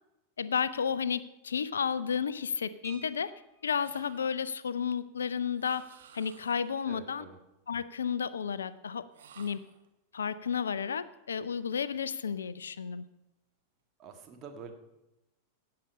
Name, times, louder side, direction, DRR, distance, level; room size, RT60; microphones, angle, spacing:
voice 1, 0.4-3.3 3.6-5.9 6.1-7.2 7.7-9.0 9.4-9.7 10.1-13.1, left 7 dB, 70° left, 17 dB, 0.4 m, -32 dB
sound 1, 2.8-3.9 5.4-5.5 5.8-6.0 6.4-6.7, right 3 dB, 5° right, 1.8 m, -53 dB
sound 2, 3.8-4.6 5.5-6.8 9.1-9.9, right 8 dB, 60° right, 1.1 m, -54 dB
voice 2, 6.9-7.4 14.0-14.7, right 6 dB, 30° right, 4 dB, 1.6 m, -47 dB
17.0 x 6.7 x 5.5 m, 0.95 s
figure-of-eight pair, 90°, 0 cm